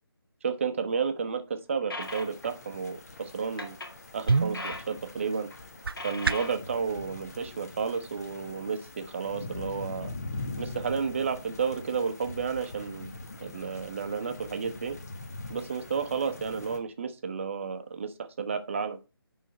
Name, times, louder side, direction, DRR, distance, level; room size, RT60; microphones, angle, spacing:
voice 1, 0.4-3.8 4.1-5.5 6.0-10.1 10.6-13.1 13.4-15.0 15.5-19.0, right 6 dB, 30° right, 8 dB, 0.9 m, -32 dB
sound 1, 1.9-2.5 3.6-4.0 4.3-5.0 5.3-5.6 5.9-6.5, left 2 dB, 60° left, 2.1 m, -39 dB
sound 2, 2.0-16.8, left 2 dB, 40° left, 1.3 m, -43 dB
sound 3, 4.2-6.7, right 4 dB, 70° right, 0.4 m, -30 dB
11.0 x 3.7 x 4.3 m, 0.30 s
figure-of-eight pair, 155°, 13 cm